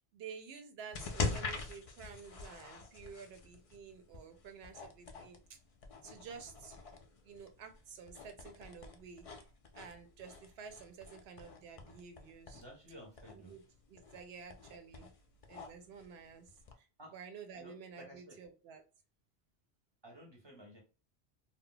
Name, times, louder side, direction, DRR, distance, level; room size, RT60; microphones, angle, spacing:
voice 1, 0.1-5.4 6.0-6.8 7.2-9.3 9.7-12.6 13.3-13.6 13.9-15.1 15.5-16.5 16.8-16.9 17.1-18.8, right 6 dB, 75° right, 7 dB, 0.8 m, -51 dB
sound 1, 0.9-16.7, left 3 dB, 55° left, 0.4 m, -45 dB
voice 2, 12.5-13.6 17.0-17.1 17.6-18.4 20.0-20.8, equal, 30° right, 1 dB, 0.7 m, -54 dB
2.3 x 2.0 x 3.8 m, 0.33 s
omnidirectional pair, 1.1 m